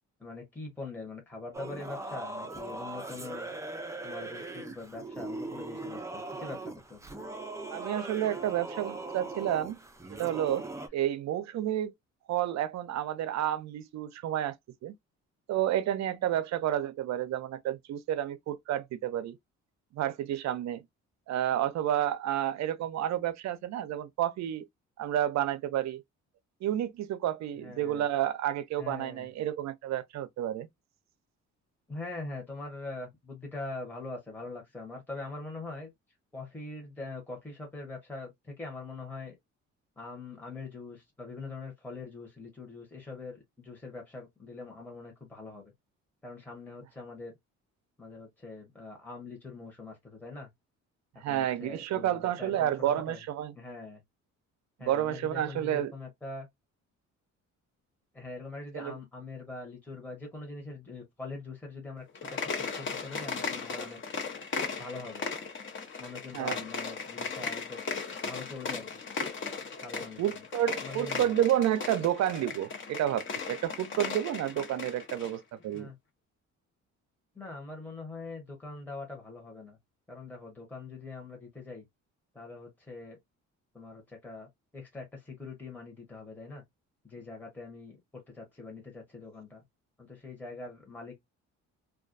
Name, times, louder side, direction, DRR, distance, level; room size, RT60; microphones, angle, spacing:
voice 1, 0.2-3.5 4.0-7.2 27.6-28.1 28.8-29.3 31.9-35.9 36.3-39.3 40.0-45.6 46.2-47.3 48.0-50.5 51.1-53.2 53.6-54.0 54.8-56.5 58.1-62.4 62.8-64.0 64.8-65.3 66.0-68.0 68.2-69.0 69.8-70.4 70.8-71.4 75.7-76.0 77.3-79.8 80.1-81.8 82.3-83.2 83.7-86.6 87.0-89.6 90.0-91.2, left 3 dB, 5° left, 0.9 m, -43 dB
Singing / Musical instrument, 1.5-10.9, right 2 dB, 10° right, 0.4 m, -40 dB
voice 2, 7.7-9.8 10.1-10.6 10.9-11.9 12.3-14.6 14.8-14.9 15.5-19.4 19.9-20.8 21.3-24.6 25.0-26.0 26.6-30.7 51.2-53.5 54.8-55.9 58.7-59.0 66.3-66.6 70.2-75.9, right 11 dB, 65° right, 0.5 m, -30 dB
sound 1, 62.1-75.4, left 5 dB, 40° left, 0.8 m, -37 dB
2.3 x 2.2 x 2.5 m
cardioid pair, 90°, 30 cm